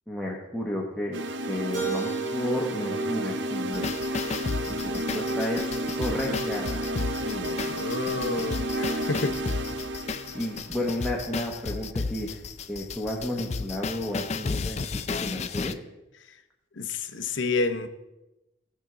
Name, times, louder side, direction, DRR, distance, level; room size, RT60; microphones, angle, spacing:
voice 1, 0.1-1.2 1.5-3.9 4.5-7.6 10.3-12.4 12.7-15.7, left 1 dB, ahead, -4 dB, 1.2 m, -32 dB
sound 1, 1.1-11.2, right 1 dB, 70° right, 0.6 m, -32 dB
Keyboard (musical), 1.7-4.6, right 7 dB, 45° right, 2.5 m, -37 dB
sound 2, 3.7-15.7, left 4 dB, 35° left, 0.4 m, -33 dB
voice 2, 7.7-9.4 16.3-16.4 16.8-17.9, left 3 dB, 80° left, 9 dB, 0.8 m, -29 dB
17.0 x 6.0 x 3.8 m, 0.97 s
head